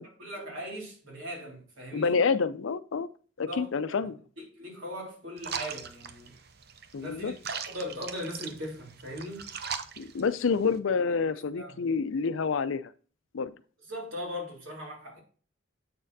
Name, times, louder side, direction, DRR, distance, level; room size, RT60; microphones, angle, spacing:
voice 1, 0.2-2.2 3.4-4.0 4.4-6.3 7.0-9.5 11.3-11.8 13.9-15.2, equal, 85° right, 3.4 m, -39 dB
voice 2, 1.9-3.1 3.4-4.2 6.9-7.3 10.0-12.9 13.3-13.5, left 5 dB, 80° left, 0.5 m, -28 dB
sound 1, 5.4-10.8, right 6 dB, 50° right, 0.6 m, -40 dB
8.0 x 6.4 x 2.6 m
head